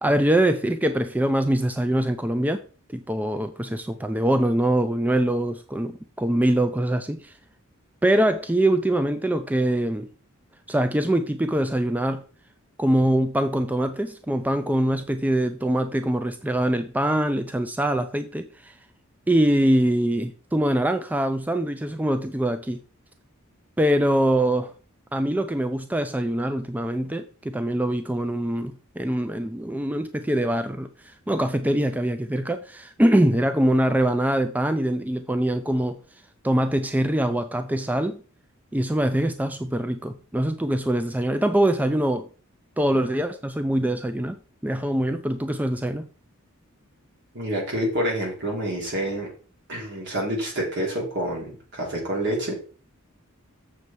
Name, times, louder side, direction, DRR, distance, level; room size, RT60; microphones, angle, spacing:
voice 1, 0.0-2.6 2.9-7.4 8.0-10.1 10.7-12.2 12.8-18.8 19.3-22.8 23.8-24.7 25.1-36.0 36.4-38.2 38.7-42.3 42.8-44.4 44.6-46.1, right 1 dB, 10° right, 0.4 m, -23 dB
voice 2, 47.3-49.3 49.7-52.6, right 1 dB, 55° right, 3.9 m, -27 dB
7.3 x 6.7 x 4.6 m
head